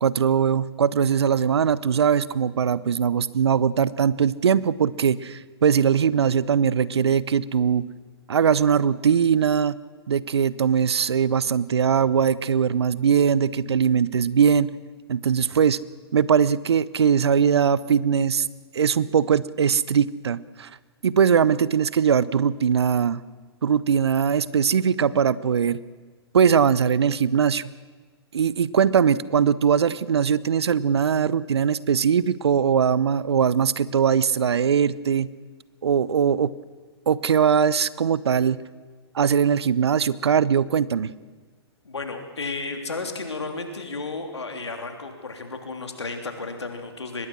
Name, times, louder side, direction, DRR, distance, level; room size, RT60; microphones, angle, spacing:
voice 1, 0.0-7.9 8.3-9.8 10.1-14.7 15.1-15.8 16.1-18.5 18.7-20.7 21.0-23.2 23.6-25.8 26.3-27.7 28.3-35.3 35.8-36.5 37.1-38.6 39.1-41.1, right 7 dB, 75° right, 19 dB, 0.8 m, -21 dB
voice 2, 41.8-47.3, left 3 dB, 85° left, 5 dB, 3.3 m, -33 dB
24.0 x 21.0 x 6.2 m, 1.4 s
figure-of-eight pair, 115°, 14 cm